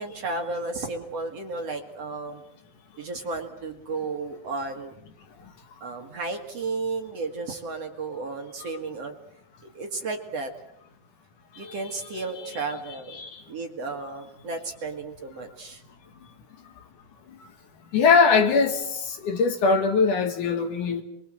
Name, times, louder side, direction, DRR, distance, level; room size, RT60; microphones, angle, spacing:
voice 1, 0.0-2.4 3.0-4.9 5.8-9.2 9.7-10.5 11.6-13.2 13.5-15.8, right 3 dB, 50° right, 2.5 m, -33 dB
voice 2, 11.5-12.6 13.1-13.4 17.9-21.0, left 5 dB, 60° left, 3.2 m, -23 dB
29.0 x 23.0 x 7.7 m
omnidirectional pair, 4.4 m